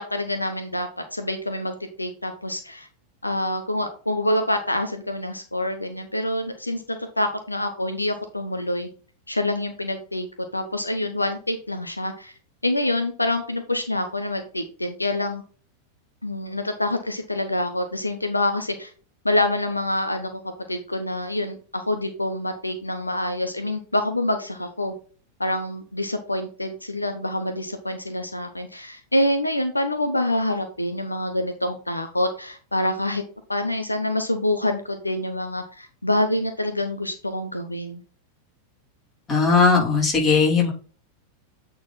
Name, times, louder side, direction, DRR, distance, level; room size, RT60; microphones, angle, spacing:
voice 1, 0.0-2.9 3.2-8.9 9.3-10.3 10.5-12.3 12.6-15.4 16.2-18.9 19.2-20.4 20.7-24.9 25.4-33.2 33.5-38.0, left 1 dB, 85° left, 7 dB, 0.7 m, -26 dB
voice 2, 39.3-40.7, left 4 dB, 25° left, -2 dB, 3.5 m, -18 dB
8.6 x 4.0 x 4.2 m, 0.39 s
figure-of-eight pair, 90°, 0 cm